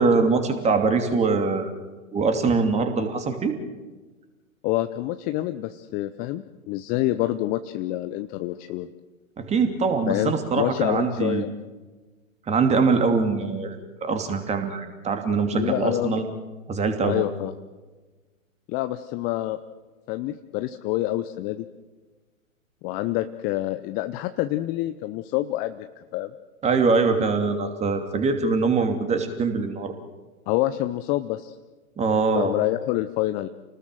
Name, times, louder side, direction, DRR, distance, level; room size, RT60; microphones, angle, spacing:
voice 1, 0.0-1.7 2.1-3.6 9.4-11.4 12.5-13.8 14.0-16.2 16.7-17.2 26.6-29.9 32.0-32.5, right 4 dB, 15° right, 6 dB, 2.8 m, -23 dB
voice 2, 4.6-8.9 10.1-11.5 15.5-16.2 17.0-17.5 18.7-19.6 20.1-21.7 22.8-26.3 30.5-31.6 32.3-33.5, left 15 dB, 20° left, 10 dB, 0.7 m, -27 dB
29.0 x 19.5 x 7.6 m, 1.3 s
figure-of-eight pair, 115°, 42 cm